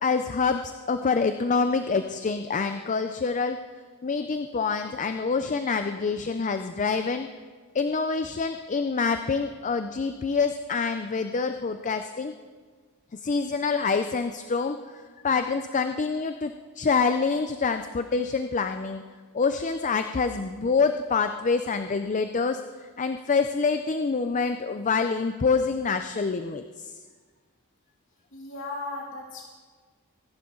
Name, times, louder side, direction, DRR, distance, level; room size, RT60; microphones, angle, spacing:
voice 1, 0.0-3.6 4.0-7.3 7.7-12.3 13.1-19.0 19.3-22.6 23.0-26.9, left 4 dB, 35° left, 8 dB, 0.5 m, -26 dB
voice 2, 28.3-29.4, left 2 dB, 60° left, -3 dB, 2.8 m, -36 dB
24.0 x 11.0 x 3.8 m, 1.5 s
head